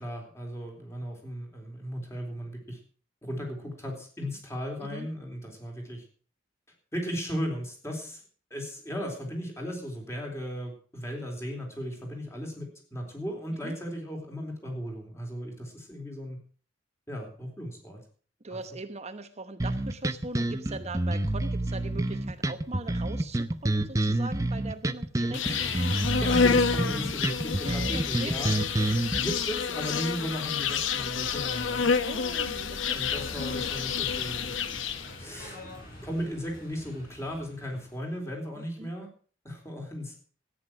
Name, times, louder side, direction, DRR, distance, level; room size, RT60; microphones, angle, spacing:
voice 1, 0.0-2.8 3.2-6.0 6.9-8.2 8.5-16.4 17.1-18.0 18.5-18.6 25.4-28.5 28.8-31.9 32.9-35.6 36.0-39.1 39.4-40.1, equal, 15° left, 1 dB, 3.9 m, -36 dB
voice 2, 4.8-5.1 13.6-13.7 18.4-25.4 27.6-28.3 32.0-32.9 38.6-38.9, right 2 dB, 35° right, 8 dB, 1.0 m, -40 dB
sound 1, 19.6-29.2, right 1 dB, 15° right, 0.6 m, -28 dB
Insect, 25.3-35.2, left 5 dB, 75° left, 0.9 m, -29 dB
sound 2, 33.1-38.2, left 1 dB, 50° left, 6.5 m, -47 dB
14.0 x 9.6 x 6.2 m, 0.43 s
head